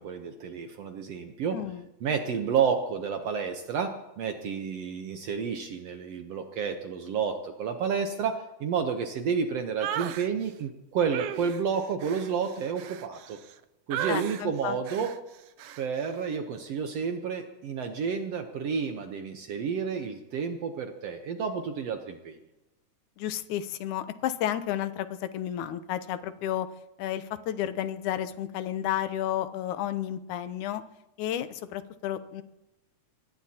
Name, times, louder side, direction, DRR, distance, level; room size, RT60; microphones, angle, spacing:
voice 1, 0.0-1.6 2.0-13.4 13.9-15.1 15.8-22.4, right 6 dB, 65° right, 5 dB, 1.9 m, -30 dB
voice 2, 1.5-1.9 14.1-15.1 23.2-26.7 27.0-30.8 31.2-32.4, left 11 dB, 85° left, 11 dB, 2.3 m, -32 dB
sound 1, 9.8-10.3 11.1-13.5 13.9-14.4 14.9-15.2 15.6-15.8, right 10 dB, 80° right, 1.3 m, -36 dB
24.0 x 18.0 x 2.9 m, 0.97 s
omnidirectional pair, 3.4 m